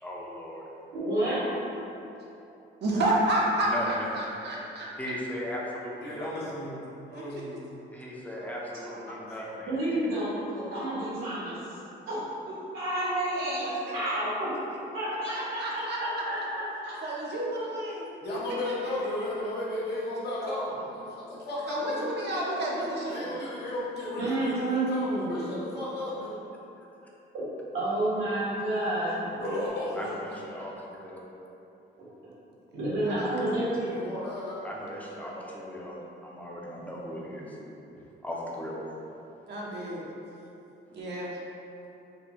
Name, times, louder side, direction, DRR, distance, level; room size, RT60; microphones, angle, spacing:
voice 1, 0.0-0.6 3.6-4.1 5.0-6.3 7.9-9.7 30.0-31.2 34.6-36.0 36.2-37.6 38.2-38.7, equal, 5° left, -4 dB, 0.5 m, -37 dB
voice 2, 0.9-1.4 9.7-11.6 12.1-14.5 14.9-16.9 20.4-20.5 24.2-25.4 27.7-29.3 32.0-32.1 32.7-33.9 37.5-37.6, right 1 dB, 85° right, -10 dB, 1.3 m, -30 dB
voice 3, 2.8-4.9 7.1-7.2 8.3-8.5 8.9-9.0 15.3-16.0 17.0-18.1 18.6-18.7 21.7-23.3 33.0-33.4 39.5-40.0 40.9-41.3, right 1 dB, 60° right, -4 dB, 0.7 m, -30 dB
voice 4, 6.0-6.7 7.1-7.6 9.3-9.5 18.2-22.1 23.1-26.4 29.4-30.1 33.9-34.6, left 1 dB, 55° left, -8 dB, 0.8 m, -34 dB
3.5 x 2.2 x 2.9 m, 2.9 s
cardioid pair, 90°, 20 cm